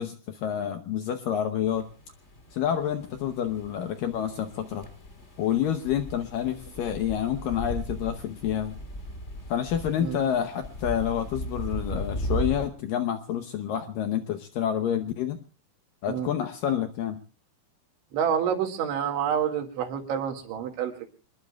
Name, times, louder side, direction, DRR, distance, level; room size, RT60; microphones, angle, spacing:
voice 1, 0.0-1.9 2.5-4.9 5.4-8.7 9.5-15.4 16.0-17.2, left 9 dB, 85° left, 7 dB, 1.9 m, -28 dB
sound 1, 1.7-12.7, equal, 35° left, 1.1 m, -37 dB
voice 2, 18.1-21.1, right 8 dB, 80° right, 4 dB, 4.4 m, -28 dB
27.0 x 21.0 x 2.4 m, 0.36 s
omnidirectional pair, 5.4 m